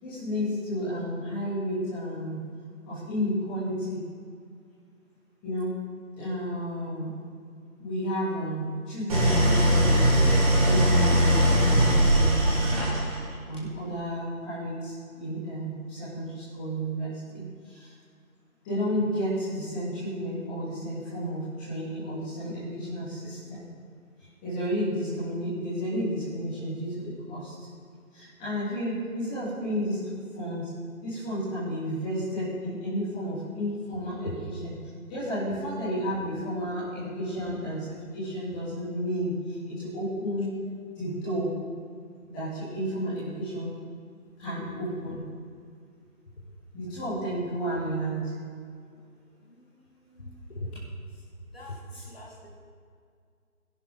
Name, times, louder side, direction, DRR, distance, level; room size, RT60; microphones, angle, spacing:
voice 1, 0.0-2.4 2.8-4.1 5.4-5.8 6.1-7.1 7.8-10.1 10.6-12.9 13.4-17.9 18.6-23.6 24.4-27.5 28.1-30.7 31.0-34.7 35.1-40.5 41.0-41.5 42.3-43.7 44.4-45.2 46.7-48.3 51.9-52.0, equal, 5° left, -13 dB, 2.6 m, -32 dB
Idling, 9.1-13.3, equal, 25° right, 3.9 m, -21 dB
voice 2, 50.1-50.7 51.5-52.6, left 2 dB, 45° left, -1 dB, 2.1 m, -39 dB
25.0 x 10.5 x 4.0 m, 2.2 s
figure-of-eight pair, 170°, 43 cm